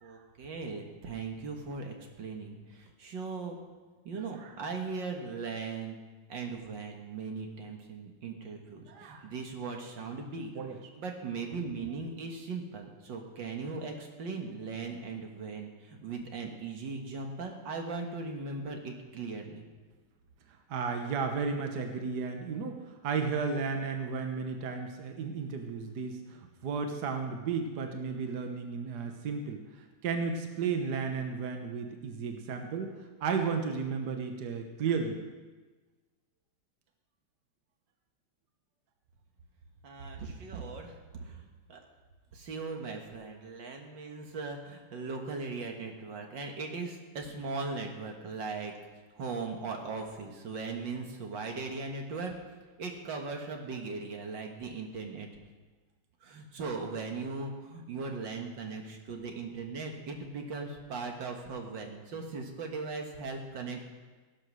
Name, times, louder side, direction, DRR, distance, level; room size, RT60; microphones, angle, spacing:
voice 1, 0.0-3.6 4.0-6.0 6.3-19.7 39.8-41.8 42.3-48.7 49.1-52.3 52.8-55.3 56.2-63.9, right 4 dB, 85° right, 3 dB, 2.2 m, -39 dB
voice 2, 8.9-9.3 10.6-10.8 11.5-11.9 20.7-35.2, right 5 dB, 65° right, 5 dB, 1.6 m, -34 dB
17.0 x 7.7 x 6.3 m, 1.3 s
omnidirectional pair, 1.9 m